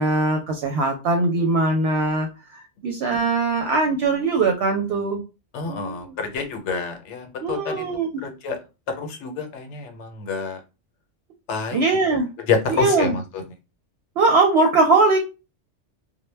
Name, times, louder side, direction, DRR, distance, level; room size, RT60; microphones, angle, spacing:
voice 1, 0.0-5.2 5.7-6.2 7.4-8.2 11.7-12.3 12.7-13.1 14.2-15.2, right 3 dB, 65° right, 4 dB, 0.7 m, -21 dB
voice 2, 5.5-7.8 8.2-8.6 8.9-10.6 11.5-11.8 12.1-13.4, left 5 dB, 75° left, 6 dB, 0.9 m, -28 dB
2.1 x 2.1 x 3.2 m, 0.29 s
omnidirectional pair, 1.2 m